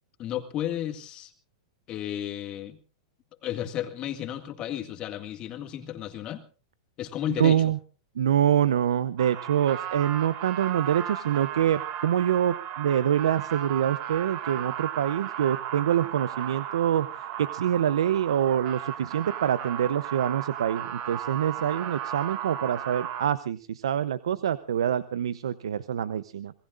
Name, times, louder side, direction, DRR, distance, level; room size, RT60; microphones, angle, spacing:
voice 1, 0.2-1.3 1.9-2.8 3.4-6.4 7.0-7.7, left 11 dB, 30° left, 7 dB, 2.0 m, -33 dB
voice 2, 7.4-7.8 8.2-17.1 17.4-26.5, right 10 dB, 85° right, 15 dB, 0.7 m, -25 dB
sound 1, 9.2-23.3, right 10 dB, 45° right, 1.9 m, -35 dB
26.5 x 20.0 x 2.5 m, 0.38 s
hypercardioid pair, 135°, 3 cm